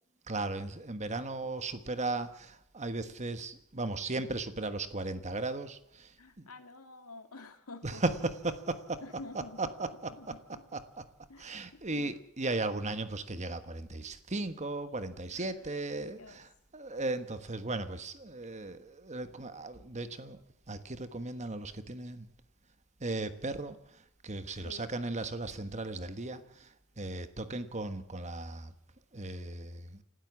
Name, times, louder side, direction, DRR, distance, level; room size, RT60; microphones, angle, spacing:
voice 1, 0.3-5.8 7.8-9.0 9.6-10.1 10.7-10.8 11.4-16.5 16.7-20.4 20.7-22.2 23.0-23.7 24.2-26.4 27.0-28.7 29.1-29.8, right 2 dB, 30° right, 1.4 m, -36 dB
voice 2, 6.2-8.0 9.0-9.7 10.1-10.6 11.3-12.2 15.3-15.5 16.2-16.4 24.6-24.9, left 2 dB, 85° left, 2.3 m, -49 dB
29.0 x 13.0 x 7.4 m
head